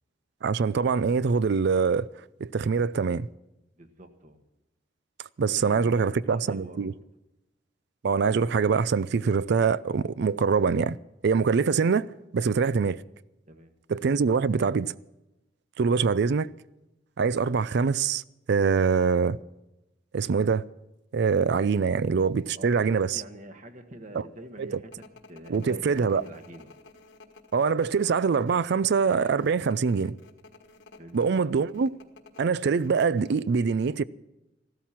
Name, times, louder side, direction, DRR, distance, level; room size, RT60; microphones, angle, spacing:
voice 1, 0.4-2.1 2.4-3.3 5.4-6.9 8.0-11.0 11.2-12.1 12.3-13.0 13.9-14.9 15.8-16.5 17.2-18.2 18.5-19.4 20.1-20.6 21.1-23.2 24.6-24.7 25.5-26.2 27.5-30.1 31.1-32.0 32.4-34.0, right 5 dB, 60° right, 0.4 m, -24 dB
voice 2, 3.7-4.4 5.4-7.0 13.5-13.7 22.5-24.9 25.3-26.8 31.0-31.2, right 1 dB, 40° right, 1.5 m, -45 dB
sound 1, 24.9-33.3, left 3 dB, 70° left, 1.4 m, -53 dB
14.5 x 13.0 x 5.8 m
head